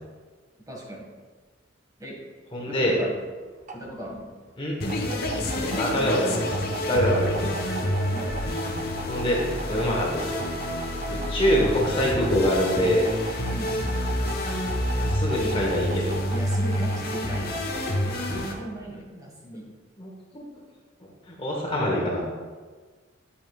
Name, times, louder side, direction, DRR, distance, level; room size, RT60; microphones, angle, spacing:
voice 1, 0.7-1.1 2.0-2.2 2.7-3.1 3.7-4.3 5.4-6.1 8.1-8.6 13.5-13.8 15.9-19.6, right 1 dB, 20° right, -3 dB, 1.7 m, -37 dB
voice 2, 2.5-3.0 4.6-4.8 5.8-7.5 9.1-9.4 9.6-10.3 11.1-13.0 14.9-16.1 19.1-19.2 20.0-20.4 21.3-22.2, equal, 25° left, -2 dB, 1.2 m, -25 dB
sound 1, 3.1-18.9, right 3 dB, 35° right, 0.7 m, -41 dB
sound 2, 4.8-18.5, left 1 dB, 50° left, 1.0 m, -28 dB
10.0 x 7.6 x 2.4 m, 1.4 s
head